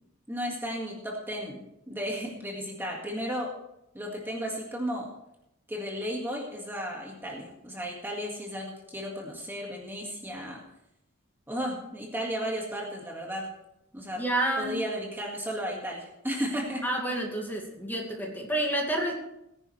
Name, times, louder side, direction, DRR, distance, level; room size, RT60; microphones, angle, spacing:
voice 1, 0.3-3.5 3.9-5.1 5.7-10.6 11.5-13.5 13.9-14.2 14.6-16.8, equal, 10° right, -1 dB, 2.0 m, -34 dB
voice 2, 14.2-14.8 16.8-19.1, right 1 dB, 10° left, 0 dB, 2.2 m, -29 dB
19.0 x 10.0 x 3.3 m, 0.83 s
head